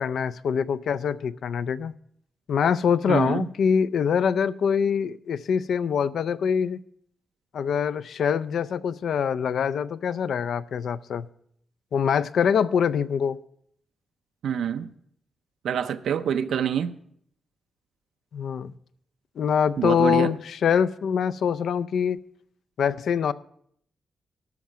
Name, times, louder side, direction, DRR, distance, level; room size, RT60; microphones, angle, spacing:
voice 1, 0.0-1.9 2.5-6.8 7.5-11.3 11.9-13.4 18.3-18.7 19.4-22.2 22.8-23.3, left 7 dB, 65° left, 15 dB, 0.4 m, -24 dB
voice 2, 3.1-3.5 14.4-14.9 15.6-17.0 19.8-20.3, right 8 dB, 80° right, 9 dB, 0.5 m, -26 dB
13.0 x 5.9 x 7.4 m, 0.68 s
wide cardioid pair, 175°, 0 cm